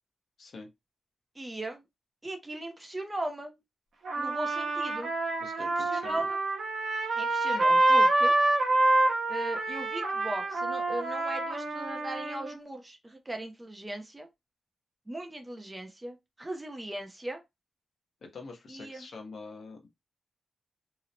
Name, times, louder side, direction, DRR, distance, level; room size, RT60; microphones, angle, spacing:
voice 1, 0.4-0.7 5.4-6.2 18.2-19.9, left 3 dB, 55° left, 0.7 m, -45 dB
voice 2, 1.4-1.8 2.2-3.6 4.2-5.1 5.6-6.4 7.2-8.3 9.3-14.3 15.1-17.4 18.7-19.1, right 1 dB, 15° right, 0.4 m, -38 dB
Trumpet, 4.0-12.5, right 2 dB, 80° right, 0.7 m, -27 dB
2.8 x 2.0 x 2.5 m
wide cardioid pair, 170°, 0 cm